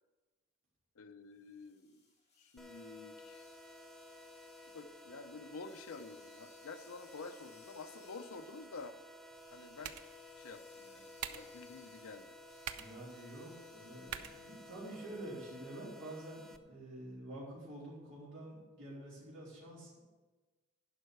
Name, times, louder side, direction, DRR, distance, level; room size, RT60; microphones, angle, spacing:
voice 1, 1.0-2.0 2.4-3.4 4.7-9.0 9.5-10.0 10.4-12.3 14.6-14.7, left 4 dB, 65° left, 7 dB, 0.6 m, -50 dB
sound 1, 1.3-15.3, left 3 dB, 30° left, 1.9 m, -67 dB
sound 2, 2.6-16.6, left 1 dB, ahead, 0.4 m, -54 dB
sound 3, 9.3-15.3, right 8 dB, 85° right, 0.6 m, -50 dB
voice 2, 12.8-20.1, right 1 dB, 55° right, -7 dB, 3.7 m, -48 dB
11.0 x 5.5 x 6.5 m, 1.3 s
head